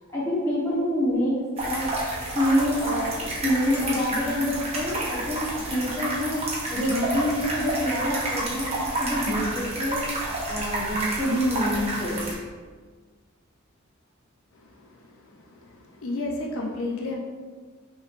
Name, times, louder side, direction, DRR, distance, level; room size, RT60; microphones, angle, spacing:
voice 1, 0.1-10.1 10.4-12.2, equal, 10° left, -8 dB, 1.1 m, -27 dB
sound 1, 1.6-12.3, right 1 dB, 30° right, 0.9 m, -30 dB
voice 2, 15.3-17.2, left 2 dB, 75° left, -1 dB, 0.6 m, -32 dB
5.7 x 3.2 x 2.5 m, 1.5 s
head